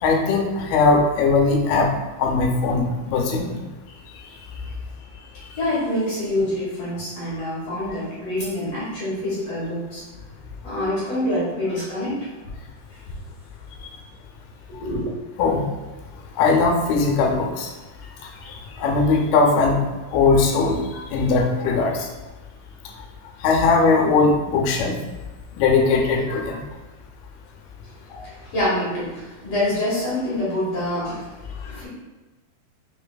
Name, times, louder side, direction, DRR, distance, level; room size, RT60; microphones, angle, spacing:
voice 1, 0.0-1.9 2.2-3.6 15.4-15.6 16.4-17.7 18.5-19.8 20.1-22.1 23.4-24.9 25.6-26.6, left 4 dB, 80° left, 1 dB, 2.6 m, -19 dB
voice 2, 5.6-10.0 10.6-12.3 12.9-13.0 14.7-15.1 27.8-27.9 28.2-31.9, left 1 dB, 60° left, -9 dB, 1.8 m, -26 dB
6.0 x 3.3 x 2.3 m, 1.2 s
omnidirectional pair, 4.5 m